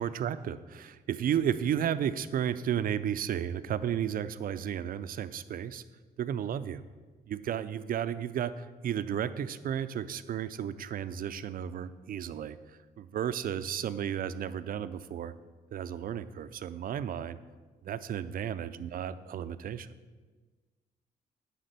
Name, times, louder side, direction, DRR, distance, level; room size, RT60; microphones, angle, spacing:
voice 1, 0.0-5.8 6.2-6.8 7.3-12.6 13.0-15.3 15.7-17.4 17.8-19.9, right 9 dB, 55° right, 13 dB, 0.4 m, -33 dB
9.3 x 3.6 x 6.7 m, 1.4 s
cardioid pair, 75°, 17 cm